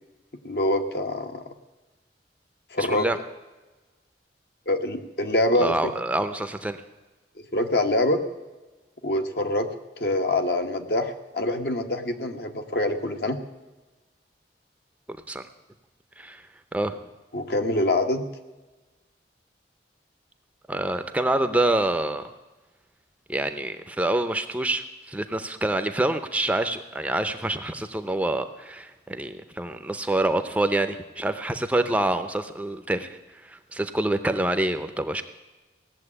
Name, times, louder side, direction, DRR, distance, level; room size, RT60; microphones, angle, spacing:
voice 1, 0.4-1.4 2.7-3.0 4.7-5.9 7.5-8.2 9.0-9.7 10.0-13.4 17.3-18.2, left 1 dB, 60° left, 6 dB, 1.3 m, -25 dB
voice 2, 2.8-3.2 5.6-6.8 15.3-15.4 16.2-16.4 16.7-17.0 20.7-22.2 23.3-35.2, right 1 dB, 10° right, 9 dB, 0.6 m, -26 dB
17.5 x 7.4 x 9.8 m, 1.2 s
head